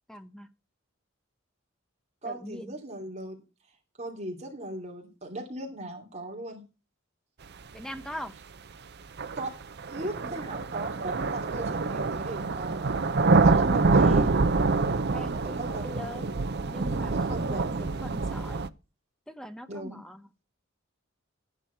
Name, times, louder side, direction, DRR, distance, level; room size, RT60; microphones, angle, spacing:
voice 1, 0.1-0.5 2.2-2.8 7.7-8.3 13.4-14.3 15.1-16.4 16.7-18.6 19.3-20.3, equal, 5° left, 9 dB, 0.8 m, -41 dB
voice 2, 2.2-3.4 4.0-6.6 9.4-9.6 9.9-12.9 13.3-14.3 15.3-15.8 16.9-17.6 19.7-20.0, right 2 dB, 30° right, 0 dB, 2.7 m, -38 dB
sound 1, 8.1-8.2 9.2-18.7, right 3 dB, 50° right, 0.6 m, -26 dB
13.0 x 9.4 x 4.5 m, 0.31 s
head